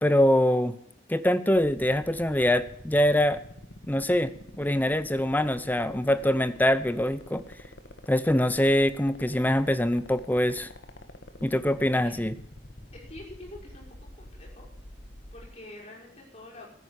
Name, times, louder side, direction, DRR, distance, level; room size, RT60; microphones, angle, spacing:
voice 1, 0.0-0.8 1.1-3.4 3.9-7.4 8.1-10.7 11.4-12.4, left 1 dB, 10° left, 14 dB, 0.7 m, -24 dB
sound 1, 1.6-15.5, left 1 dB, 70° left, 1.5 m, -46 dB
voice 2, 12.9-13.9 14.2-14.7 15.3-16.7, left 1 dB, 35° left, -3 dB, 6.0 m, -46 dB
14.0 x 10.0 x 8.2 m, 0.69 s
head